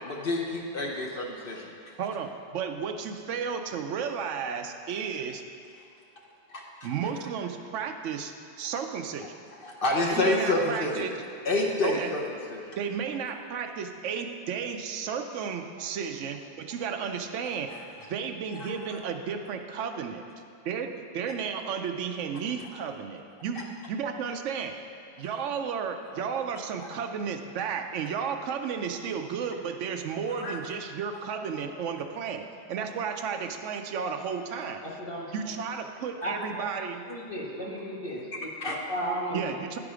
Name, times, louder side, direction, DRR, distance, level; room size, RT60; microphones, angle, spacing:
voice 1, 0.0-1.7 6.5-6.9 9.6-11.1 11.4-12.2 12.5-12.6 17.7-17.8 18.6-19.0 30.4-30.6 38.6-38.8, left 2 dB, 50° left, 0 dB, 0.9 m, -28 dB
voice 2, 2.0-5.4 6.8-9.4 10.0-11.1 11.8-12.1 12.8-17.8 18.1-20.2 20.6-24.8 25.2-34.8 35.3-37.0 39.3-39.8, right 6 dB, 80° right, 6 dB, 0.9 m, -33 dB
voice 3, 34.8-35.3 36.2-36.7 37.1-39.5, equal, 25° left, -3 dB, 1.3 m, -35 dB
10.0 x 4.9 x 4.9 m, 2.5 s
omnidirectional pair, 1.2 m